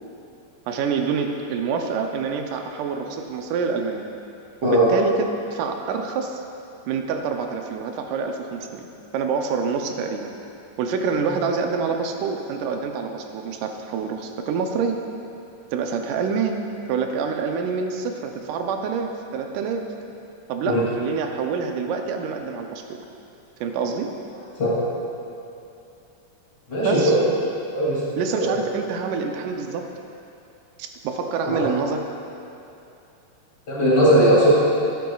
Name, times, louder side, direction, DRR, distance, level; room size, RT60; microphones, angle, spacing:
voice 1, 0.7-4.1 4.6-6.4 6.9-8.9 9.1-10.3 10.8-15.0 15.7-16.6 16.9-19.9 20.5-23.0 23.6-24.1 26.8-27.2 28.2-29.9 30.8-32.0, right 5 dB, 85° right, 4 dB, 2.2 m, -26 dB
voice 2, 26.7-27.2 27.7-28.0 28.4-28.5 31.4-31.7 33.7-34.5, right 1 dB, 35° left, -9 dB, 2.8 m, -18 dB
12.5 x 10.5 x 2.3 m, 2.8 s
omnidirectional pair, 3.6 m